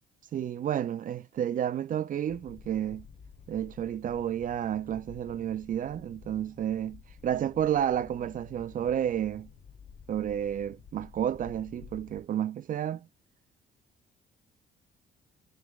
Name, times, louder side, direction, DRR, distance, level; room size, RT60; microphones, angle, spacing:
voice 1, 0.3-3.1 3.5-9.5 10.1-13.1, right 10 dB, 45° right, 0.4 m, -31 dB
sound 1, 2.3-12.2, left 6 dB, 45° left, 0.7 m, -52 dB
3.2 x 3.1 x 3.5 m
cardioid pair, 90°, 20 cm